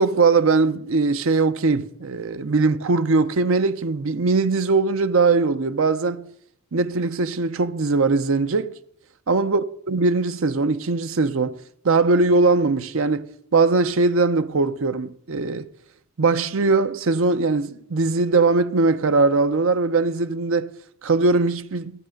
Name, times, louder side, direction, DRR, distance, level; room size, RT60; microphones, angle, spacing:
voice 1, 0.0-6.3 6.7-8.7 9.3-11.6 11.8-15.7 16.2-20.7 21.0-21.9, right 3 dB, 65° right, 0.6 m, -20 dB
13.5 x 7.4 x 6.4 m
head